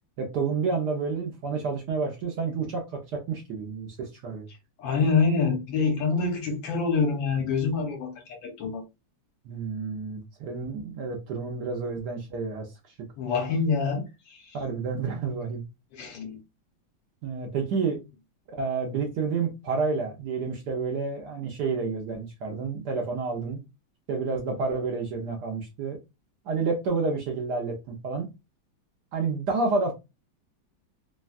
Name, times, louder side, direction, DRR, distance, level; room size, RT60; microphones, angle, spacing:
voice 1, 0.2-4.5 9.4-12.7 14.5-15.6 17.2-18.0 18.5-23.6 24.1-26.0 26.5-28.3 29.1-29.9, right 4 dB, 70° right, 1.1 m, -29 dB
voice 2, 4.8-8.8 13.2-14.5 15.9-16.4, left 4 dB, 75° left, 1.5 m, -26 dB
3.4 x 2.1 x 2.3 m
omnidirectional pair, 2.2 m